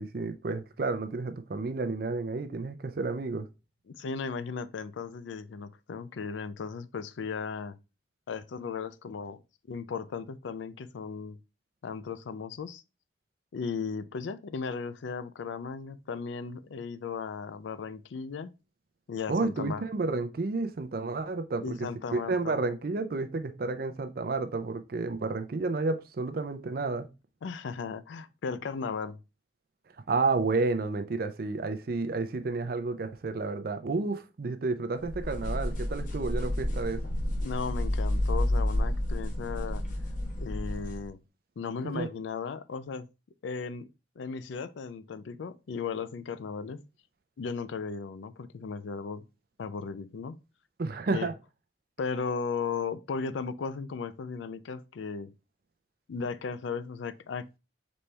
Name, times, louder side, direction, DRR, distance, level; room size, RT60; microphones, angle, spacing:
voice 1, 0.0-3.5 19.3-21.9 22.1-27.1 30.1-37.0 41.8-42.1 50.8-51.3, right 3 dB, 50° right, 0.5 m, -31 dB
voice 2, 3.9-7.8 8.3-9.4 9.7-11.4 11.8-12.8 13.5-18.5 19.1-19.8 21.6-22.6 27.4-29.2 36.7-36.8 37.4-39.8 40.4-41.2 41.6-43.1 43.4-43.9 44.2-46.8 47.4-49.2 49.6-50.4 51.1-51.3 52.0-55.3 56.1-57.6, left 5 dB, 80° left, 0.4 m, -36 dB
sound 1, 35.1-41.1, left 1 dB, 45° left, 0.9 m, -30 dB
4.2 x 3.3 x 3.1 m
head